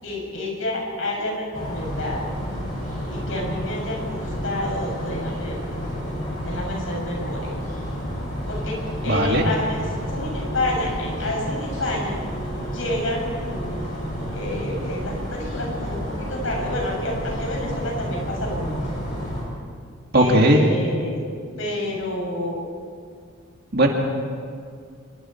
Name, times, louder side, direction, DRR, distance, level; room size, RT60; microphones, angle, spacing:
voice 1, 0.0-2.3 3.1-5.6 6.4-7.5 8.5-8.8 9.0-12.2 12.6-13.8 14.3-18.8 20.1-21.3 21.6-22.7, left 1 dB, 70° left, -1 dB, 7.2 m, -29 dB
sound 1, 1.5-19.4, equal, 35° left, 6.8 m, -30 dB
voice 2, 9.0-9.5 20.1-20.6 23.7-23.9, right 1 dB, 50° right, 1 dB, 2.2 m, -17 dB
26.0 x 23.0 x 4.6 m, 2.2 s
head